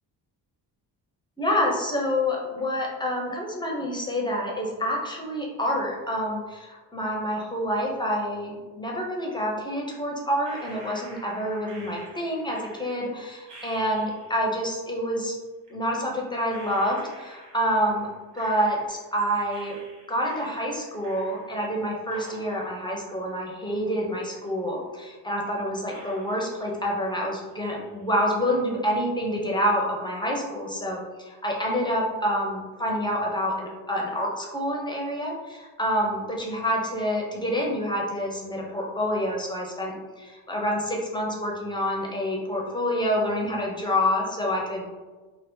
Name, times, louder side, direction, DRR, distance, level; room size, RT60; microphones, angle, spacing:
voice 1, 1.4-15.3 15.7-18.1 18.3-19.8 20.1-44.9, equal, 10° left, -2 dB, 0.4 m, -27 dB
sound 1, 10.4-14.6 15.6-15.7 16.5-19.2 19.5-21.8 22.1-24.1 24.5-24.6 25.2-25.3 25.9-27.2 27.5-28.0, right 1 dB, 70° right, 1.1 m, -49 dB
2.7 x 2.3 x 3.5 m, 1.3 s
cardioid pair, 140°, 42 cm